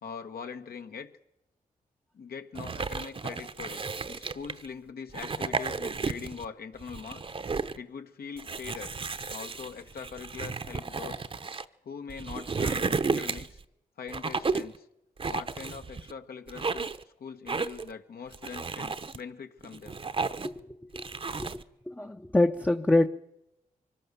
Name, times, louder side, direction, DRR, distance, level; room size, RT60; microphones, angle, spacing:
voice 1, 0.0-1.2 2.1-7.3 7.8-8.9 9.3-11.3 11.8-13.6 14.0-14.9 15.3-16.9 17.2-20.0, left 6 dB, 80° left, 6 dB, 1.7 m, -42 dB
sound 1, 2.5-4.7 5.1-6.5 6.8-7.8 8.4-11.6 12.1-13.6 14.1-14.8 15.2-16.1 16.5-17.0 17.5-17.9 18.3-19.2 19.6-20.6 21.0-21.6, right 4 dB, 35° right, 0.8 m, -33 dB
voice 2, 20.4-21.6 21.9-23.1, left 2 dB, 10° left, 4 dB, 0.7 m, -26 dB
24.5 x 18.5 x 7.0 m, 0.86 s
wide cardioid pair, 105°, 16 cm